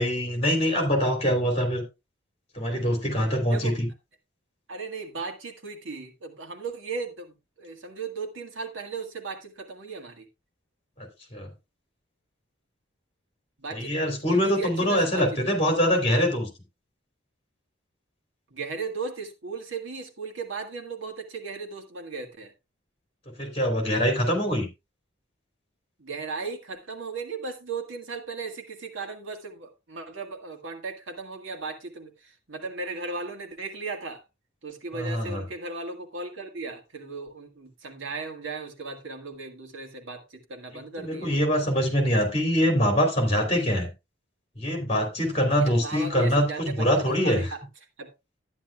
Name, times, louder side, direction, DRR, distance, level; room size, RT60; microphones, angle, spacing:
voice 1, 0.0-1.8 2.5-3.9 11.0-11.5 13.7-16.5 23.4-24.7 34.9-35.4 41.0-43.9 44.6-47.5, equal, 30° left, 2.9 m, -24 dB
voice 2, 4.7-10.3 13.6-13.9 14.3-15.4 18.5-22.5 26.0-34.2 34.6-41.3 45.6-47.6 48.0-48.1, right 4 dB, 75° right, 1.7 m, -36 dB
12.0 x 9.9 x 2.3 m
head